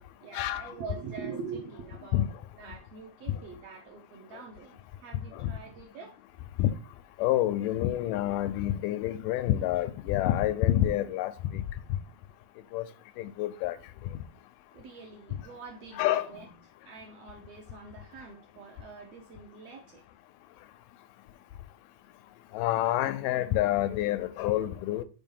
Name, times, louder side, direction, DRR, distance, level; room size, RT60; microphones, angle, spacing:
voice 1, 0.2-2.3 2.6-6.2 11.0-11.1 14.7-16.5 16.8-20.0, right 5 dB, 70° right, 1.6 m, -44 dB
voice 2, 7.2-11.6 12.7-12.8 13.2-13.8 16.0-16.3 22.5-25.0, left 13 dB, 85° left, 2.2 m, -27 dB
5.6 x 4.5 x 5.4 m
omnidirectional pair, 3.8 m